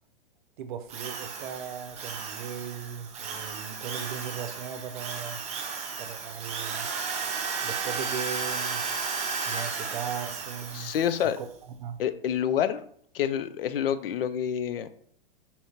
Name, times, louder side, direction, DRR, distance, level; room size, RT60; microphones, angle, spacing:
voice 1, 0.6-5.4 6.0-6.9 7.6-8.9 9.5-11.0 11.4-11.5 11.8-12.0, right 8 dB, 60° right, 0.6 m, -37 dB
Drill, 0.9-11.3, right 5 dB, 25° right, 0.8 m, -34 dB
voice 2, 10.7-11.4 12.0-12.8 13.1-14.9, left 9 dB, 70° left, 0.5 m, -27 dB
4.2 x 3.5 x 2.8 m
hypercardioid pair, 115°, 29 cm